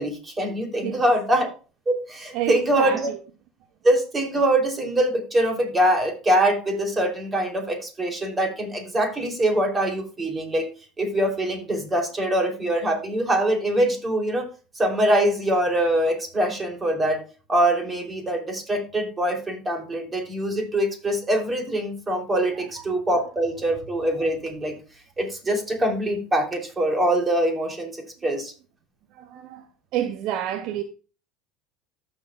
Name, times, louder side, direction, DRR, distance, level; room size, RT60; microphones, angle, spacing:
voice 1, 0.0-1.5 1.9-3.1 3.8-10.7 11.0-14.5 14.7-17.2 17.5-24.7 25.2-28.5, right 1 dB, 25° right, 3.0 m, -23 dB
voice 2, 2.3-3.2 22.6-22.7 29.1-29.7 29.9-30.8, right 11 dB, 60° right, 0.6 m, -29 dB
14.5 x 5.8 x 2.3 m
hypercardioid pair, 75°, 0 cm